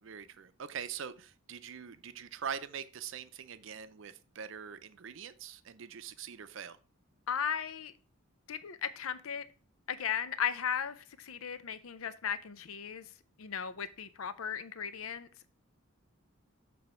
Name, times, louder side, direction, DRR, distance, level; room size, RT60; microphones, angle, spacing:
voice 1, 0.0-6.8, right 7 dB, 65° right, 0.5 m, -43 dB
voice 2, 7.3-7.9 8.5-9.4 9.9-13.1 13.4-15.5, left 8 dB, 85° left, 0.6 m, -36 dB
6.9 x 3.4 x 5.4 m
head